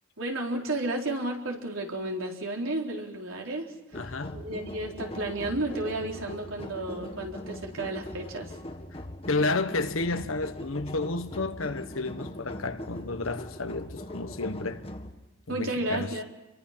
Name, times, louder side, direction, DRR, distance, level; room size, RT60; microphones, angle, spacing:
voice 1, 0.2-4.0 4.3-8.6 15.5-16.2, right 2 dB, 85° right, 3.8 m, -32 dB
voice 2, 3.9-4.4 9.3-14.8 15.5-16.1, left 3 dB, 80° left, 1.2 m, -31 dB
sound 1, 3.9-15.1, left 1 dB, 30° left, 1.8 m, -40 dB
28.0 x 23.0 x 5.8 m
head